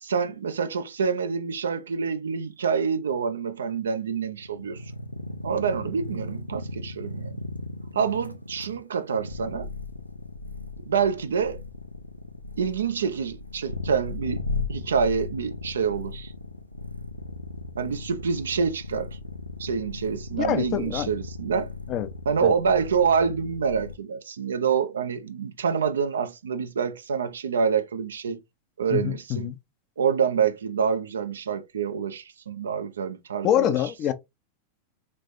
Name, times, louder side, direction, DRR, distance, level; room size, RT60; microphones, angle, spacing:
voice 1, 0.0-4.8 5.4-7.4 7.9-9.7 10.9-11.6 12.6-14.4 14.7-16.3 17.8-19.1 19.6-21.7 22.3-28.4 28.8-29.5 30.0-33.7, right 6 dB, 70° right, 0.5 m, -26 dB
sound 1, 4.4-24.0, left 3 dB, 90° left, 0.5 m, -37 dB
voice 2, 20.4-21.1 21.9-22.1 22.4-22.5 28.9-29.6 33.4-34.1, left 11 dB, 35° left, 0.6 m, -25 dB
4.0 x 3.2 x 2.6 m
figure-of-eight pair, 90°, 0 cm